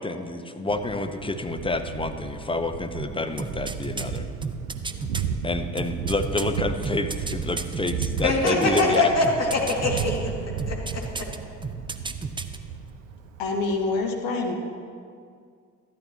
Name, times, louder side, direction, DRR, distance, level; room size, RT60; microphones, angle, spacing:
voice 1, 0.0-4.2 5.4-9.3, left 2 dB, 15° left, 7 dB, 0.9 m, -28 dB
Thunder, 0.7-14.0, right 6 dB, 85° right, 0.5 m, -34 dB
sound 1, 3.4-5.2 5.8-9.0 9.2-10.2 10.6-11.4 11.6-12.6 12.9-13.0, right 3 dB, 15° right, 0.6 m, -33 dB
voice 2, 8.2-10.3 10.7-11.3, left 2 dB, 40° left, -2 dB, 2.5 m, -24 dB
voice 3, 13.4-14.5, left 3 dB, 65° left, 2 dB, 1.5 m, -26 dB
13.5 x 12.0 x 3.0 m, 2.2 s
figure-of-eight pair, 45°, 38 cm